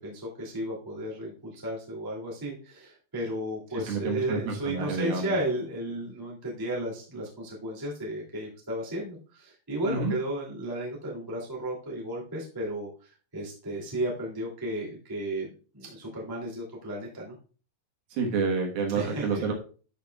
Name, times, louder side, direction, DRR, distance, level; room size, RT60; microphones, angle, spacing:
voice 1, 0.0-15.5 15.7-17.4 18.9-19.4, right 1 dB, 10° right, -4 dB, 1.5 m, -34 dB
voice 2, 3.9-5.3 9.8-10.1 18.1-19.5, right 4 dB, 70° right, 1 dB, 3.0 m, -29 dB
13.0 x 5.9 x 2.3 m, 0.38 s
omnidirectional pair, 4.8 m